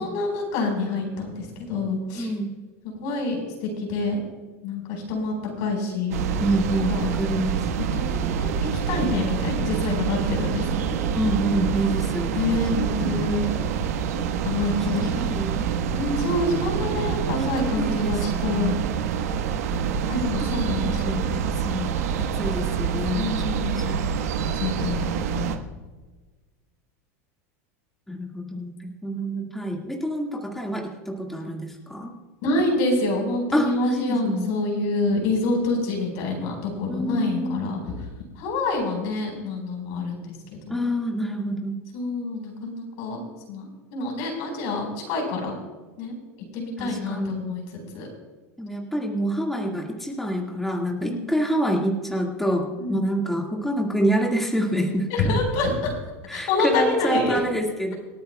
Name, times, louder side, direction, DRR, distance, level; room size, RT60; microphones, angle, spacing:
voice 1, 0.0-2.3 2.8-4.2 4.6-6.3 6.9-7.1 7.9-8.5 8.9-11.1 12.4-13.5 14.4-15.2 15.9-18.8 20.1-21.1 23.1-24.1 24.5-25.5 32.4-37.9 38.4-40.8 41.9-43.2 43.5-45.6 46.0-46.1 46.5-47.6 47.9-48.1 51.0-51.3 52.8-53.1 55.1-55.9 56.3-57.4, left 2 dB, 60° left, 1 dB, 4.6 m, -27 dB
voice 2, 2.2-2.5 6.4-7.6 11.1-13.2 15.0-15.6 17.8-18.8 20.4-21.9 22.2-23.3 23.8-24.0 28.1-32.1 33.5-34.5 36.9-37.7 40.7-41.8 46.8-47.4 48.6-55.4 56.3-57.9, equal, 5° left, -1 dB, 1.8 m, -27 dB
sound 1, 6.1-25.6, right 7 dB, 80° right, 1.2 m, -26 dB
26.5 x 9.2 x 2.3 m, 1.3 s
supercardioid pair, 125°, 8 cm